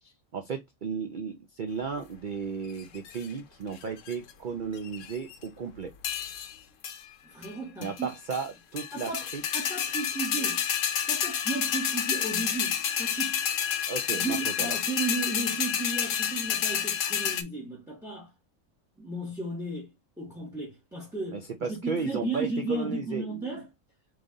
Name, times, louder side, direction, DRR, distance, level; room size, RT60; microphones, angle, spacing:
voice 1, 0.0-5.9 7.8-9.4 13.9-14.7 21.3-23.6, right 5 dB, 55° right, 0.5 m, -34 dB
sound 1, 2.8-3.3 3.8-4.3 4.8-5.4 6.0-6.5 6.8-7.0 7.4-7.5 7.8-8.5 8.8-17.4, left 8 dB, 65° left, 1.0 m, -30 dB
voice 2, 7.2-8.1 8.9-9.2 9.5-10.6 11.1-13.4 14.1-18.3 19.0-21.4 21.7-23.7, right 3 dB, ahead, 1.7 m, -34 dB
3.7 x 3.3 x 3.8 m
omnidirectional pair, 1.5 m